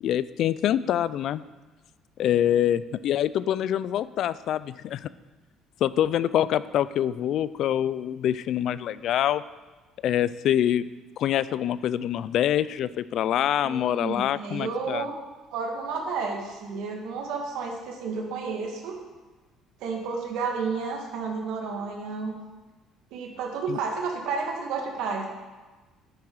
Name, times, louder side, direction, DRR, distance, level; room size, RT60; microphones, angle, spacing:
voice 1, 0.0-1.4 2.2-5.1 5.8-9.4 10.0-10.8 11.2-15.0 23.7-23.8, left 11 dB, 65° left, 17 dB, 0.4 m, -25 dB
voice 2, 13.6-15.1 15.5-19.0 19.8-22.4 23.1-25.3, right 4 dB, 80° right, 1 dB, 2.1 m, -31 dB
9.6 x 9.4 x 4.8 m, 1.3 s
cardioid pair, 100°, 0 cm